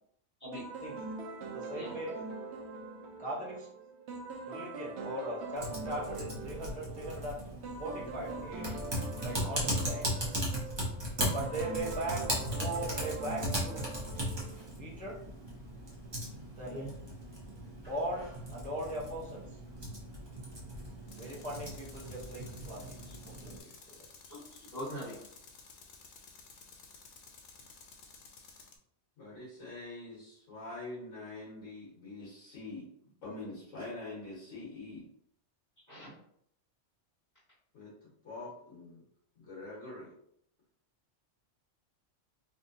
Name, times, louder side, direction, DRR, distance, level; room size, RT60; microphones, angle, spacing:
celestial piano, 0.5-14.7, right 3 dB, 65° right, 0.8 m, -43 dB
voice 1, 1.5-2.2 3.2-3.7 4.5-8.8 9.2-10.1 11.3-12.2 12.6-13.9 14.8-15.2 16.6-16.9 17.9-19.4 21.2-23.0 23.2-23.6, right 1 dB, 10° left, -5 dB, 0.5 m, -39 dB
Typing, 5.6-23.6, equal, 25° right, 0.8 m, -38 dB
Tools, 21.1-28.8, left 4 dB, 60° left, 0.5 m, -54 dB
voice 2, 24.3-25.2 35.9-36.1, equal, 35° left, -11 dB, 1.7 m, -42 dB
voice 3, 29.2-32.9 33.2-35.1 37.7-39.0 39.4-40.1, left 2 dB, 85° left, -8 dB, 1.6 m, -44 dB
3.5 x 2.6 x 2.6 m, 0.68 s
omnidirectional pair, 1.3 m